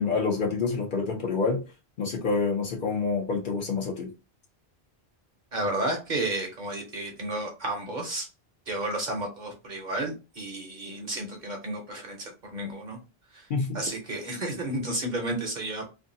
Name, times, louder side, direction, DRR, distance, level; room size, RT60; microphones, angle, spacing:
voice 1, 0.0-1.6 2.0-4.1 13.5-13.8, left 4 dB, 55° left, 0.8 m, -27 dB
voice 2, 5.5-8.3 8.7-13.0 13.3-13.5 13.7-15.8, right 1 dB, 50° right, 0.7 m, -32 dB
2.6 x 2.3 x 2.6 m
omnidirectional pair, 1.1 m